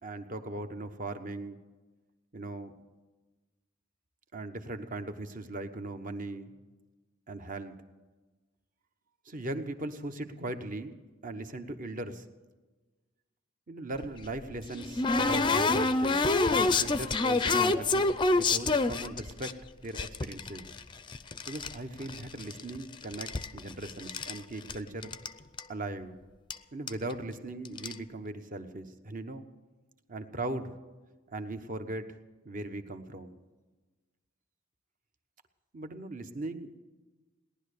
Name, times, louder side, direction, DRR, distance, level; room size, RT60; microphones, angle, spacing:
voice 1, 0.0-1.6 2.3-2.7 4.3-6.6 7.3-7.7 9.2-10.9 11.2-12.2 13.7-19.6 19.8-20.7 21.5-25.1 25.7-26.2 26.7-29.4 30.1-30.8 31.3-32.0 32.4-33.4 35.7-36.7, right 2 dB, 40° right, 8 dB, 1.1 m, -39 dB
sound 1, 14.0-19.5 20.0-21.7 22.0-22.8 23.0-24.4 24.7-24.8 25.0-25.3 25.6-25.7 26.5-26.6 26.9-27.1 27.7-27.9, left 3 dB, 25° left, 0.5 m, -27 dB
18.0 x 11.0 x 6.7 m, 1.2 s
head